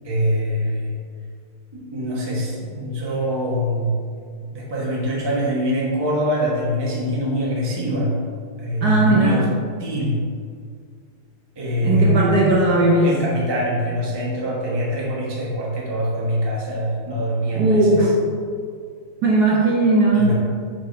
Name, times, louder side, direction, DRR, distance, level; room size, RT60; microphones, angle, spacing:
voice 1, 0.0-1.0 1.7-4.0 4.5-8.2 8.6-9.5 9.8-10.2 11.5-12.5 13.0-18.1 20.1-20.3, equal, 15° right, -5 dB, 0.9 m, -23 dB
voice 2, 8.8-9.5 11.8-13.1 17.5-18.1 19.2-20.3, right 2 dB, 60° right, -4 dB, 1.2 m, -17 dB
6.0 x 4.0 x 5.1 m, 2.1 s
omnidirectional pair, 2.3 m